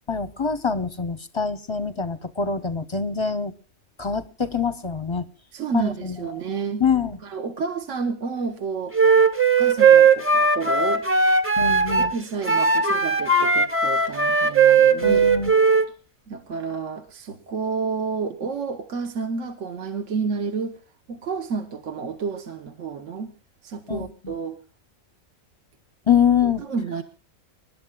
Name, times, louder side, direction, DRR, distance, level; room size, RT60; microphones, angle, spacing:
voice 1, 0.1-3.5 4.0-5.3 5.7-6.2 6.8-7.2 11.6-12.1 15.0-15.5 23.9-24.3 26.1-26.6, left 6 dB, 30° left, 13 dB, 0.6 m, -24 dB
voice 2, 5.5-6.8 7.2-9.3 9.6-11.1 11.9-15.3 16.3-20.8 21.1-23.3 23.6-24.6 26.4-27.0, right 5 dB, 65° right, 7 dB, 1.4 m, -30 dB
Wind instrument woodwind instrument, 8.9-12.1 12.4-15.9, right 5 dB, 10° right, 0.8 m, -18 dB
28.0 x 12.0 x 2.3 m, 0.35 s
omnidirectional pair, 1.4 m